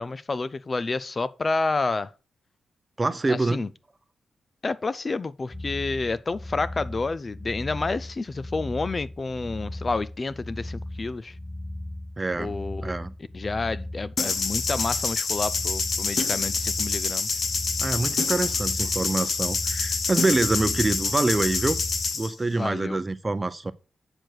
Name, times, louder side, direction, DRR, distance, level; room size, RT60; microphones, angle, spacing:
voice 1, 0.0-2.1 3.3-3.7 4.6-11.3 12.3-12.9 13.3-17.3 22.5-23.0, left 3 dB, 35° left, 0.4 m, -29 dB
voice 2, 3.0-3.7 12.2-12.5 12.8-13.1 17.8-21.8 22.1-23.7, right 2 dB, 25° right, 0.6 m, -25 dB
sound 1, 5.5-22.1, left 1 dB, 5° left, 2.8 m, -37 dB
sound 2, 14.2-22.3, left 4 dB, 60° left, 1.3 m, -27 dB
7.8 x 6.6 x 4.5 m
cardioid pair, 100°, 0 cm